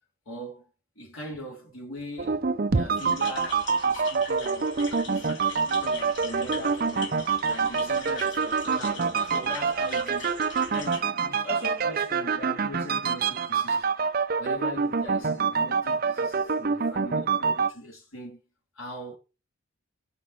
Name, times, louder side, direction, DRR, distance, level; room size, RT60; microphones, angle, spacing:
voice 1, 0.3-0.7 1.0-4.7 5.0-5.3 5.6-10.4 10.7-13.9 14.4-18.4 18.7-19.2, left 1 dB, 75° left, 3.8 m, -41 dB
sound 1, 2.2-17.7, right 5 dB, 45° right, 0.6 m, -26 dB
sound 2, 3.0-11.0, left 4 dB, 55° left, 2.6 m, -41 dB
6.1 x 5.8 x 6.2 m
head